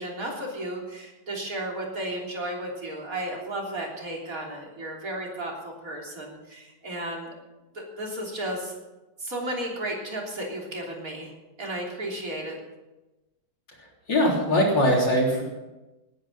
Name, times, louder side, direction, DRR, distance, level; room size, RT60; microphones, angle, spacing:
voice 1, 0.0-7.3 7.7-8.8 9.2-12.6, right 1 dB, 50° right, -1 dB, 3.8 m, -34 dB
voice 2, 13.8-15.4, equal, 75° left, -2 dB, 4.3 m, -22 dB
19.0 x 10.5 x 5.7 m, 1.1 s
omnidirectional pair, 2.0 m